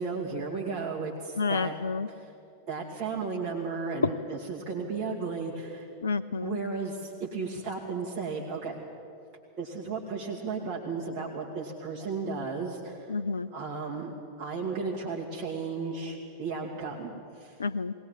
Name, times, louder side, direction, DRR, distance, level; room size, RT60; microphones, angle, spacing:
voice 1, 0.0-1.7 2.1-2.3 2.7-5.8 6.4-8.8 9.6-13.2 13.5-17.5, right 4 dB, 35° right, -3 dB, 2.5 m, -34 dB
voice 2, 1.4-2.1 6.0-6.6 13.1-13.5 17.6-17.9, left 4 dB, 70° left, 13 dB, 0.4 m, -30 dB
21.0 x 18.0 x 7.6 m, 2.5 s
figure-of-eight pair, 90°, 0 cm